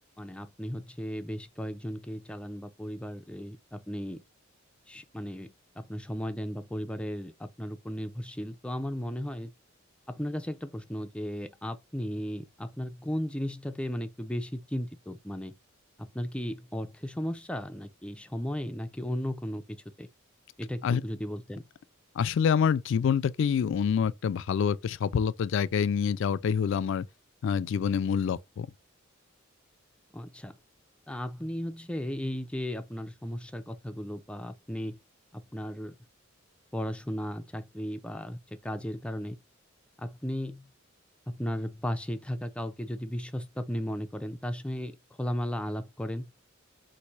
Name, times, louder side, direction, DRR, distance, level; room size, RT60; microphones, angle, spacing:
voice 1, 0.2-4.2 4.9-9.5 10.1-15.5 16.0-20.1 20.6-21.6 30.1-30.5 31.1-35.0 35.3-36.0 36.7-39.4 40.0-40.7 41.3-46.3, equal, 5° left, 0.5 m, -35 dB
voice 2, 22.2-27.1 27.4-28.7, left 7 dB, 65° left, 0.3 m, -26 dB
4.1 x 2.6 x 4.6 m
head